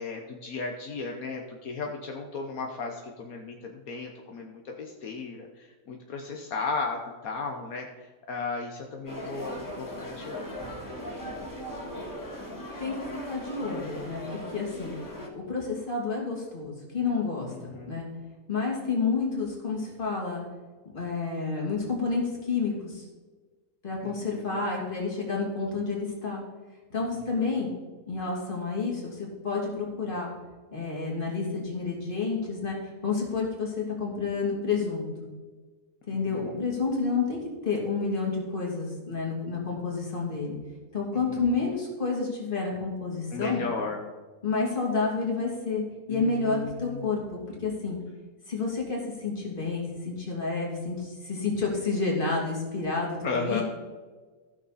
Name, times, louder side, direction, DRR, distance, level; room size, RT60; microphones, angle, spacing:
voice 1, 0.0-7.9 8.3-10.7 11.9-12.0 17.5-18.0 24.0-24.6 27.2-27.6 36.3-36.6 41.3-41.6 43.3-44.0 46.1-47.1 53.2-53.6, left 4 dB, 75° left, 2 dB, 1.4 m, -35 dB
sound 1, 9.1-15.3, equal, 15° left, 1.9 m, -38 dB
voice 2, 12.8-14.9 15.3-18.1 18.5-20.4 20.9-23.0 23.8-26.4 26.9-27.7 28.1-30.3 30.7-32.8 33.0-35.3 36.1-40.6 40.9-43.7 44.4-48.0 48.5-53.6, left 4 dB, 35° left, -2 dB, 2.8 m, -30 dB
15.0 x 6.3 x 4.1 m, 1.4 s
omnidirectional pair, 1.5 m